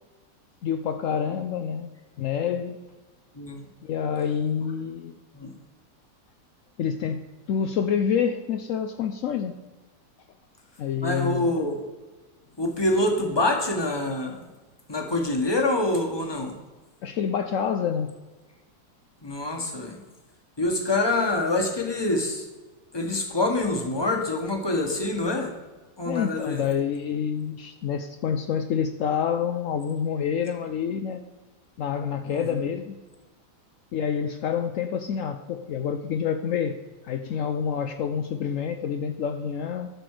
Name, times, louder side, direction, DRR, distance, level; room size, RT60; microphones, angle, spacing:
voice 1, 0.6-1.9 2.2-2.8 3.8-5.1 6.8-7.2 7.5-9.5 10.8-11.5 17.0-18.1 26.1-31.2 31.8-33.0 33.9-36.8 37.0-39.9, left 7 dB, 75° left, 7 dB, 0.7 m, -27 dB
voice 2, 3.3-3.7 5.3-5.5 11.0-11.9 12.6-14.5 14.9-16.6 19.2-20.0 20.6-22.5 22.9-25.5 26.0-26.6 32.2-32.6, left 2 dB, 15° left, 3 dB, 1.3 m, -26 dB
13.5 x 6.1 x 4.9 m, 1.2 s
omnidirectional pair, 2.0 m